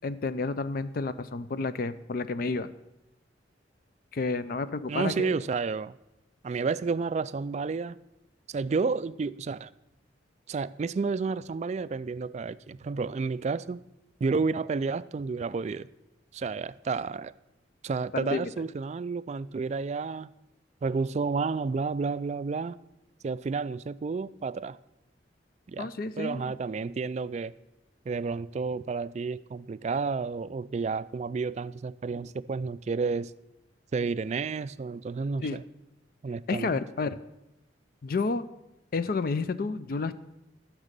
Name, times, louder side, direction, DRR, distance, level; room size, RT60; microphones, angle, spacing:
voice 1, 0.0-2.7 4.1-5.3 18.1-18.5 25.8-26.5 35.4-35.6 36.5-37.2 38.0-38.5 38.9-40.1, left 3 dB, 50° left, 0.4 m, -30 dB
voice 2, 4.9-6.0 6.4-8.0 8.5-9.7 10.5-13.8 14.2-15.9 16.3-17.3 17.8-20.3 20.8-22.8 23.2-24.8 25.7-25.9 26.2-27.5 28.1-33.3 33.9-35.6 36.2-36.8, right 4 dB, 40° right, 0.3 m, -31 dB
14.0 x 6.1 x 6.6 m
head